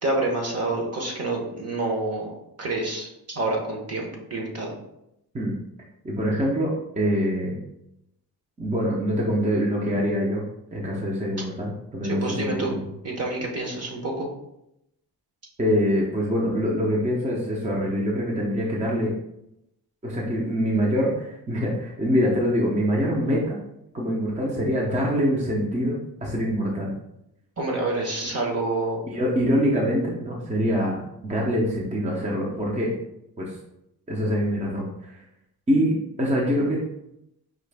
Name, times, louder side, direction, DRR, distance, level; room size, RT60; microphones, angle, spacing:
voice 1, 0.0-2.3 2.6-4.7 12.0-12.7 13.0-14.3 27.6-29.0, right 2 dB, 40° right, 0 dB, 1.0 m, -28 dB
voice 2, 6.0-7.6 8.6-10.4 10.7-12.8 15.6-19.1 20.0-23.6 23.9-26.9 29.1-32.9 33.4-33.6 34.1-35.2 35.7-36.8, equal, 20° right, -3 dB, 0.6 m, -24 dB
4.9 x 3.1 x 3.3 m, 0.83 s
wide cardioid pair, 170°, 37 cm